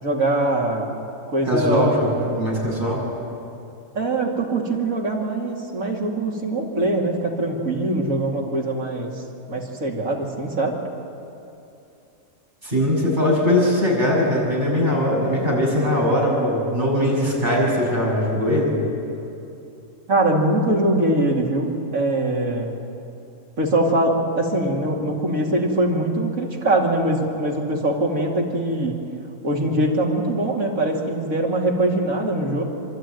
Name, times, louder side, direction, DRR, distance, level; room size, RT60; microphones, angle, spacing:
voice 1, 0.0-0.9 1.3-2.0 3.9-9.2 9.5-10.8 20.1-22.7 23.6-29.0 29.4-32.6, right 2 dB, 90° right, -2 dB, 3.1 m, -22 dB
voice 2, 1.5-3.0 12.6-18.8, left 1 dB, 35° right, -5 dB, 7.1 m, -20 dB
27.5 x 13.0 x 9.3 m, 2.7 s
omnidirectional pair, 1.4 m